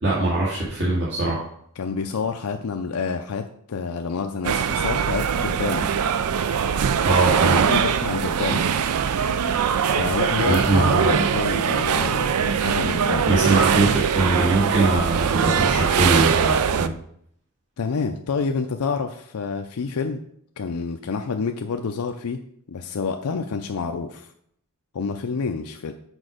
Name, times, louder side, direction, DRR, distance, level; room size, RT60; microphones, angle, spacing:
voice 1, 0.0-1.5 7.0-7.6 10.5-11.2 13.3-16.9, right 2 dB, 55° right, -7 dB, 1.8 m, -22 dB
voice 2, 1.8-5.9 7.4-8.9 9.9-13.3 17.8-20.2 20.6-22.4 22.7-24.3 24.9-25.9, left 5 dB, 85° left, 5 dB, 0.5 m, -28 dB
sound 1, 4.4-16.9, right 7 dB, 85° right, 0.4 m, -22 dB
6.3 x 4.8 x 5.0 m, 0.68 s
head